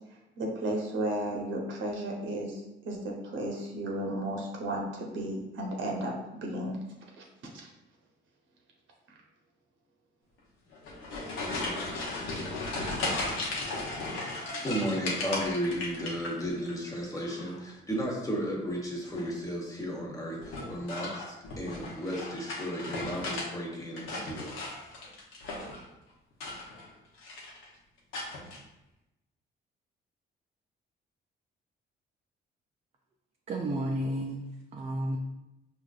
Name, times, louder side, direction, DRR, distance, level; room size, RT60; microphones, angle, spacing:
voice 1, 0.4-6.8 7.6-7.7, right 1 dB, 75° right, -1 dB, 0.9 m, -34 dB
sound 1, 10.7-16.7 17.0-17.6 19.0-19.4 20.4-23.5 23.8-25.8 26.3-26.9 27.2-27.6 28.1-28.6, left 2 dB, 85° left, 0.9 m, -36 dB
voice 2, 14.6-24.6, equal, 15° left, -2 dB, 1.0 m, -34 dB
voice 3, 33.5-35.2, right 1 dB, 35° right, 1 dB, 0.4 m, -32 dB
4.7 x 2.5 x 2.3 m, 0.91 s
cardioid pair, 90°, 20 cm